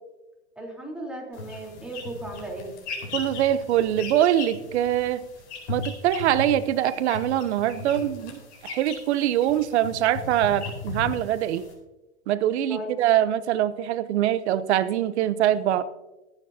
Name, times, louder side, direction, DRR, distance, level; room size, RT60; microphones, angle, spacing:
voice 1, 0.6-2.8 12.7-13.0, right 1 dB, 5° right, -2 dB, 3.6 m, -36 dB
sound 1, 1.3-11.7, left 3 dB, 75° left, 4.5 m, -38 dB
voice 2, 3.1-5.2 5.7-11.6 12.3-15.8, right 11 dB, 70° right, 15 dB, 0.9 m, -23 dB
21.0 x 9.2 x 2.8 m, 1.1 s
hypercardioid pair, 110°, 35 cm